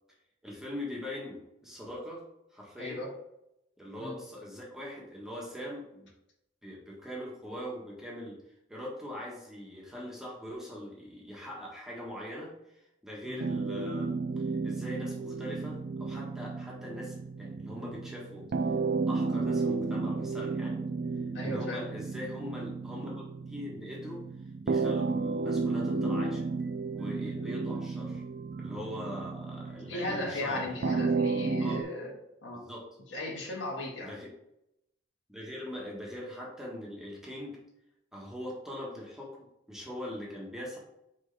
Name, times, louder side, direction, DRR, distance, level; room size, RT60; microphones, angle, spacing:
voice 1, 0.4-2.2 2.5-3.0 3.8-6.1 6.6-8.4 8.7-12.5 13.0-18.4 19.1-20.8 21.4-24.2 24.6-26.5 26.9-28.2 28.6-31.0 31.6-31.8 32.5-32.8 34.0-34.3 35.3-37.6 38.1-40.8, left 1 dB, 5° right, -4 dB, 1.4 m, -41 dB
voice 2, 2.8-3.1 4.0-4.2 13.2-13.4 21.3-21.8 29.8-32.1 32.4-32.6 33.1-34.1, left 1 dB, 75° left, -2 dB, 1.7 m, -36 dB
sound 1, 13.4-31.8, right 4 dB, 55° right, 0.4 m, -33 dB
6.2 x 4.5 x 3.4 m, 0.83 s
head